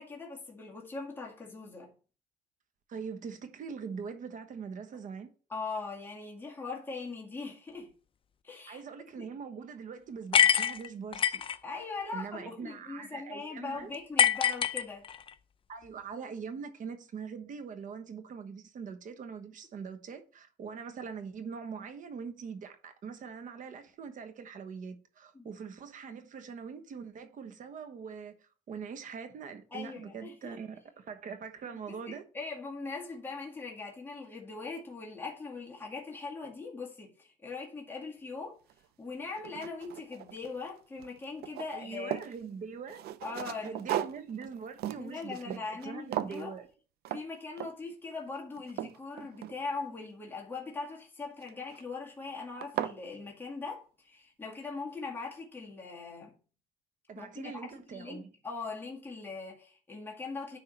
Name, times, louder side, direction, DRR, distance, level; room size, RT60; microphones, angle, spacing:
voice 1, 0.0-1.9 5.5-7.9 8.4-8.8 9.2-9.3 11.6-15.1 25.3-25.5 29.7-30.6 31.9-38.6 39.0-42.2 43.2-44.1 45.0-46.6 47.1-56.4 57.2-60.6, left 4 dB, 10° left, 2.0 m, -41 dB
voice 2, 2.9-5.3 8.7-11.4 12.1-13.9 15.7-32.2 41.7-43.0 43.6-46.7 57.1-58.3, right 6 dB, 50° right, 1.1 m, -42 dB
sound 1, 10.3-11.6 14.2-15.3, left 8 dB, 30° left, 0.5 m, -25 dB
sound 2, 38.7-38.8 39.3-40.7 41.0-42.4 42.9-45.9 46.1-46.5 47.0-47.3 47.6-47.9 48.4-49.9 51.4-51.8 52.3-52.4 52.6-53.0, right 12 dB, 70° right, 0.5 m, -37 dB
9.9 x 3.6 x 4.6 m
cardioid pair, 110°, 17 cm